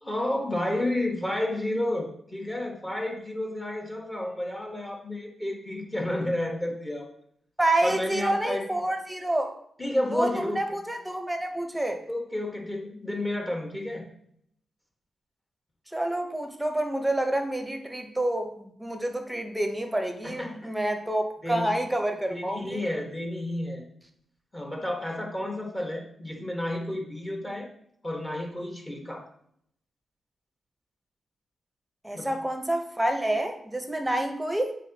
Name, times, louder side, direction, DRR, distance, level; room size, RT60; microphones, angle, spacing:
voice 1, 0.0-7.1 7.8-8.6 9.8-10.8 12.1-14.0 20.2-20.7 21.4-21.7 22.3-23.8 24.5-27.7 28.0-29.3 32.1-32.4, left 1 dB, 20° left, 0 dB, 1.4 m, -31 dB
voice 2, 7.6-9.5 10.1-12.0 15.9-22.8 32.0-34.7, right 1 dB, 10° right, 4 dB, 0.9 m, -28 dB
9.1 x 3.9 x 2.9 m, 0.69 s
cardioid pair, 75°, 0 cm